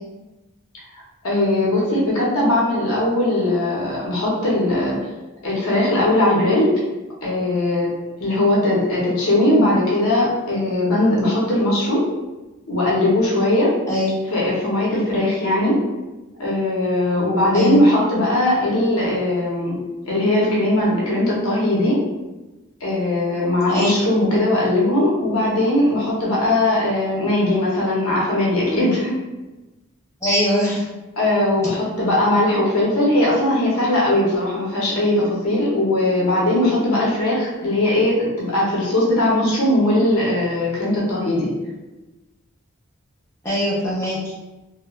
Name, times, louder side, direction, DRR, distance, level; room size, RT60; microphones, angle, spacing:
voice 1, 1.2-5.0 5.4-6.7 7.2-7.9 8.2-12.1 12.7-13.7 14.3-15.8 16.4-19.8 20.1-22.0 22.8-29.2 31.2-41.5, left 1 dB, 90° left, -5 dB, 0.8 m, -19 dB
voice 2, 30.2-30.8 43.4-44.2, left 1 dB, 15° left, -8 dB, 0.5 m, -21 dB
3.1 x 2.1 x 2.3 m, 1.1 s
head